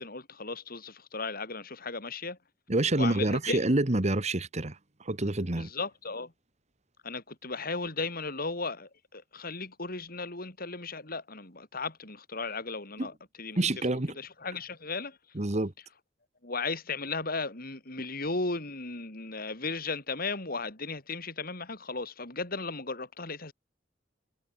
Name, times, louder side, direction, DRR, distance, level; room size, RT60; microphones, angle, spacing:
voice 1, 0.0-2.4 2.9-3.6 5.6-6.3 7.0-13.6 14.2-15.2 16.4-23.5, left 3 dB, 50° left, 5.1 m, -36 dB
voice 2, 2.7-5.7 13.0-13.1 13.6-14.2 15.3-15.7, right 2 dB, 40° right, 1.5 m, -27 dB
head